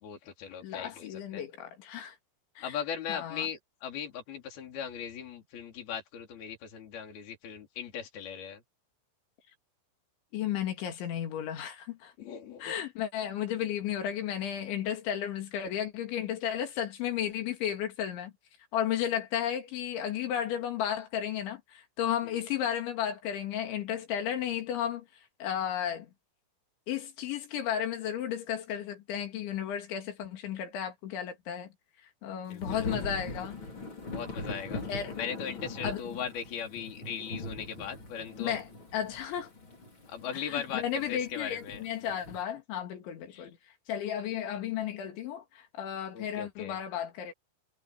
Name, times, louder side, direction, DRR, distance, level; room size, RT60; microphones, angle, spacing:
voice 1, 0.0-1.4 2.6-8.6 12.2-12.7 22.2-22.4 32.5-32.9 34.1-34.8 35.1-38.6 40.1-41.8 43.3-43.5 46.1-46.8, left 8 dB, 50° left, 5.6 m, -39 dB
voice 2, 0.6-2.2 2.6-2.8 3.1-3.5 10.3-12.1 12.6-18.3 18.7-25.0 25.4-26.1 26.9-31.7 32.2-33.6 34.9-35.1 35.8-36.0 38.4-39.5 40.3-43.6 43.9-47.3, left 9 dB, 65° left, 4.8 m, -33 dB
Thunder / Rain, 32.6-42.4, left 2 dB, 25° left, 5.1 m, -41 dB
omnidirectional pair, 5.9 m